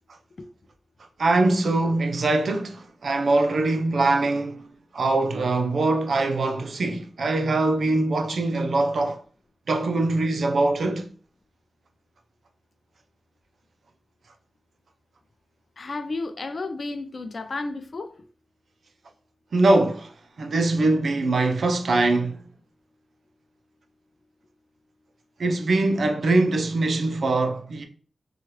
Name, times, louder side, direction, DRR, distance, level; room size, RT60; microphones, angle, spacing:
voice 1, 1.2-4.7 4.9-9.2 9.7-11.1 19.5-20.1 20.4-22.4 25.4-27.8, right 2 dB, 75° right, 0.4 m, -22 dB
voice 2, 15.8-18.1, left 3 dB, 50° left, 0.3 m, -32 dB
3.0 x 2.3 x 2.8 m
wide cardioid pair, 120°, 0 cm